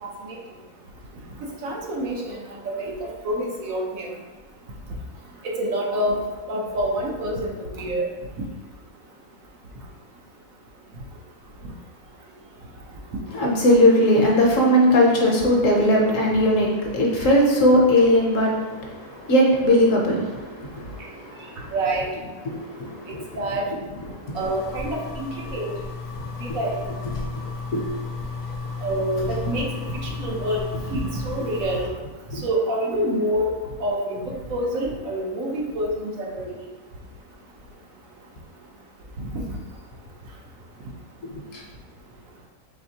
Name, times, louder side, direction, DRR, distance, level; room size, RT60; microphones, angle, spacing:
voice 1, 0.0-0.4 1.6-2.4 2.8-4.1 5.4-6.2 6.5-8.0 21.7-22.1 23.4-23.7 24.3-25.7 26.4-26.8 28.8-31.9 32.4-33.5 33.8-35.9 36.2-36.4 39.2-39.4, right 1 dB, 65° right, -1 dB, 1.0 m, -27 dB
voice 2, 13.3-21.7 22.5-23.1 24.1-24.4 27.7-27.9 32.3-32.4 41.3-41.6, left 1 dB, 65° left, -1 dB, 1.0 m, -19 dB
sound 1, 24.3-31.9, left 4 dB, 90° left, 0.3 m, -33 dB
4.2 x 3.5 x 2.7 m, 1.3 s
omnidirectional pair, 1.6 m